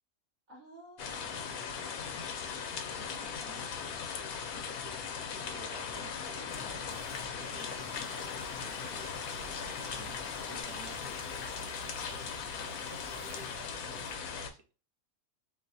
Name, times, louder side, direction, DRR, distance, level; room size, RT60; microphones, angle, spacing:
voice 1, 0.5-2.2 2.9-3.8 7.5-7.7 9.9-10.6, right 2 dB, 40° right, -7 dB, 1.9 m, -54 dB
sound 1, 1.0-14.5, left 6 dB, 85° left, 1.1 m, -39 dB
voice 2, 4.6-5.0 5.3-6.6 7.0-9.2 10.4-11.5 11.8-14.6, right 4 dB, 85° right, 7 dB, 1.1 m, -53 dB
sound 2, 5.1-10.6, left 3 dB, 50° left, 0.7 m, -47 dB
sound 3, 6.5-14.2, right 1 dB, 60° right, 1.4 m, -57 dB
3.9 x 2.4 x 2.6 m, 0.34 s
omnidirectional pair, 1.5 m